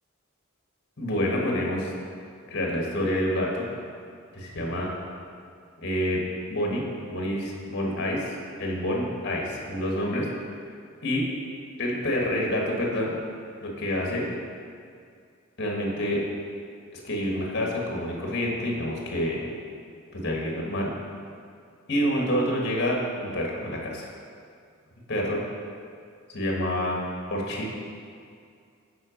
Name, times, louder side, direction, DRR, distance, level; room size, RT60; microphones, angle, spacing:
voice 1, 1.0-1.9 2.5-3.7 4.3-4.9 5.8-6.2 6.5-8.3 8.6-10.3 11.0-11.2 11.8-13.2 13.6-14.3 15.6-16.2 16.9-19.4 20.1-20.9 21.9-24.1 25.1-25.4 26.3-27.0 27.3-27.7, equal, 55° left, -1 dB, 1.5 m, -27 dB
7.7 x 5.1 x 5.1 m, 2.3 s
head